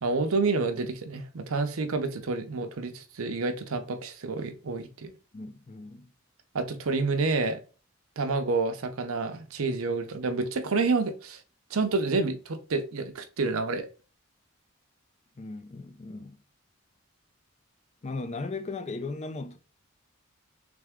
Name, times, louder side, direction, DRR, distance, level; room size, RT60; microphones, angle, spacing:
voice 1, 0.0-5.1 6.5-7.6 8.2-11.4 11.7-13.9, right 3 dB, 80° right, 0.6 m, -29 dB
voice 2, 5.3-6.1 15.4-16.4 18.0-19.6, left 3 dB, 30° left, 0.4 m, -37 dB
3.5 x 3.4 x 3.5 m
head